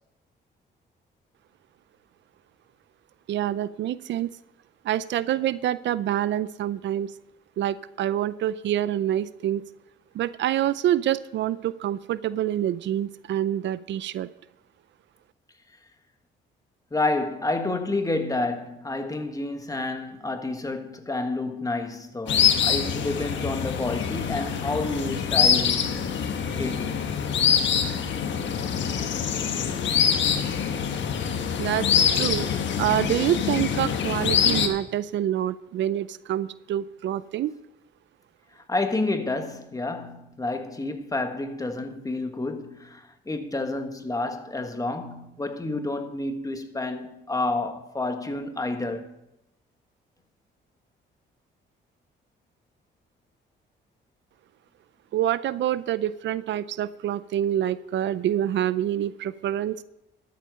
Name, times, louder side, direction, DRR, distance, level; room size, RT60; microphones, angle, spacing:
voice 1, 3.3-4.3 4.8-7.1 7.6-9.6 10.1-14.3 31.6-32.5 32.8-37.5 55.1-59.8, right 11 dB, 65° right, 0.5 m, -26 dB
voice 2, 16.9-25.9 26.6-27.0 38.5-49.1, left 2 dB, 15° left, 1.4 m, -29 dB
sound 1, 22.3-34.7, left 7 dB, 65° left, 1.4 m, -24 dB
12.5 x 8.3 x 5.2 m
cardioid pair, 90°, 20 cm